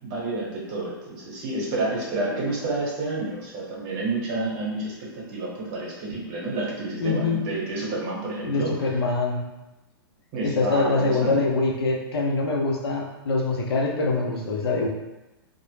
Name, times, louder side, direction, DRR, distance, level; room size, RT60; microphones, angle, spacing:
voice 1, 0.0-8.9 10.3-11.3, right 2 dB, 45° right, -4 dB, 0.9 m, -29 dB
voice 2, 7.0-7.4 8.4-9.4 10.4-14.9, left 3 dB, 85° left, 0 dB, 0.5 m, -24 dB
2.0 x 2.0 x 3.1 m, 1.0 s
hypercardioid pair, 130°, 13 cm